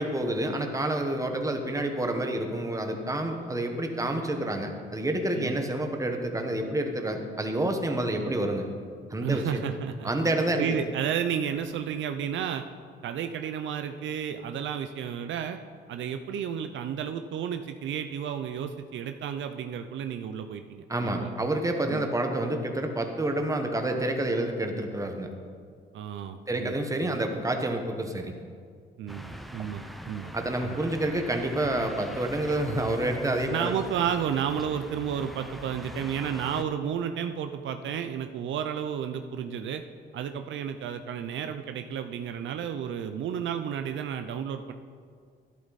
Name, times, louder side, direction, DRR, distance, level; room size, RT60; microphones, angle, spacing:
voice 1, 0.0-8.7 9.1-9.6 10.0-10.8 20.9-25.3 26.5-28.3 30.3-33.7, right 1 dB, 15° right, 4 dB, 1.4 m, -28 dB
voice 2, 9.2-10.1 10.5-12.6 13.0-15.6 15.9-21.3 21.9-22.0 25.9-26.8 27.0-27.2 29.0-30.3 30.6-30.8 33.5-39.8 40.1-44.7, right 8 dB, 70° right, 8 dB, 0.6 m, -32 dB
sound 1, 29.1-36.6, equal, ahead, 0.7 m, -43 dB
12.0 x 11.0 x 4.1 m, 2.1 s
cardioid pair, 90°, 20 cm